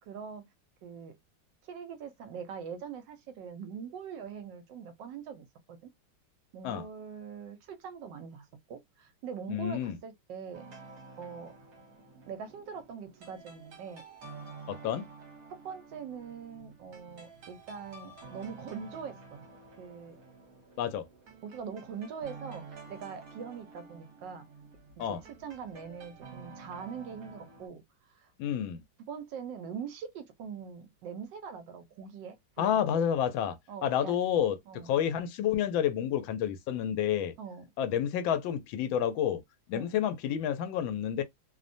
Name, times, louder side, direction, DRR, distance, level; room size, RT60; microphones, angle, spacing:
voice 1, 0.1-0.5 0.8-1.2 1.6-5.9 6.5-10.6 11.2-11.5 12.3-14.0 15.5-19.4 19.8-20.2 21.4-24.5 25.1-27.8 28.2-28.3 29.0-32.8 33.7-34.2 34.7-34.9 37.4-37.7 39.7-39.9, right 6 dB, 75° right, 1.2 m, -42 dB
voice 2, 9.5-10.0 14.7-15.1 20.8-21.0 25.0-25.2 28.4-28.8 32.6-37.3 37.8-39.4 39.7-41.2, left 9 dB, 90° left, 1.4 m, -29 dB
sound 1, 10.5-27.7, right 4 dB, 55° right, 1.2 m, -50 dB
3.1 x 2.1 x 2.5 m
omnidirectional pair, 2.1 m